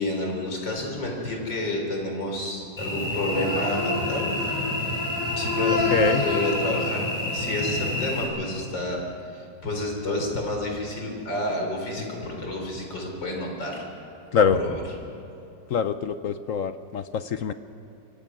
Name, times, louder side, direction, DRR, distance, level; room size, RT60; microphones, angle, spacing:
voice 1, 0.0-4.7 5.4-14.1 14.6-14.8, left 1 dB, 85° left, 1 dB, 4.7 m, -30 dB
Cricket / Buzz, 2.8-8.2, left 2 dB, 20° left, 6.2 m, -27 dB
voice 2, 5.7-6.3 14.3-14.6 15.7-17.5, left 7 dB, 60° left, 11 dB, 0.9 m, -24 dB
26.0 x 23.5 x 6.2 m, 2.7 s
omnidirectional pair, 1.9 m